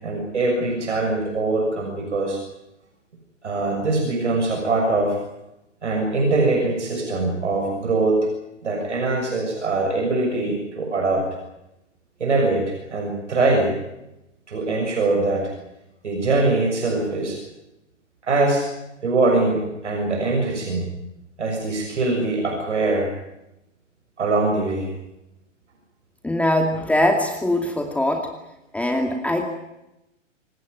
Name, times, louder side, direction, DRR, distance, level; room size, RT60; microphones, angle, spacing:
voice 1, 0.0-2.4 3.4-5.2 5.8-8.3 8.6-11.3 12.2-13.7 14.5-15.5 16.0-17.4 18.2-18.7 19.0-20.9 21.4-23.1 24.2-24.9, right 2 dB, 65° right, 2 dB, 6.8 m, -22 dB
voice 2, 26.2-28.3 28.7-29.4, left 1 dB, 5° left, 4 dB, 2.4 m, -22 dB
27.0 x 17.5 x 9.4 m, 0.90 s
figure-of-eight pair, 110°, 37 cm